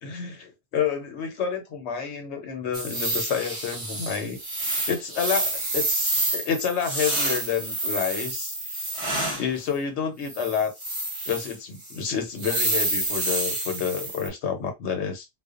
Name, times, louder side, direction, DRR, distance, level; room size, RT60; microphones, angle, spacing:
voice 1, 0.0-4.4 4.9-8.6 9.4-10.7 11.3-15.3, left 7 dB, 85° left, 1.0 m, -29 dB
sound 1, 2.7-9.5 10.3-11.5 11.8-12.0 12.4-14.3, right 2 dB, 30° right, 0.7 m, -28 dB
2.5 x 2.1 x 2.4 m
omnidirectional pair, 1.1 m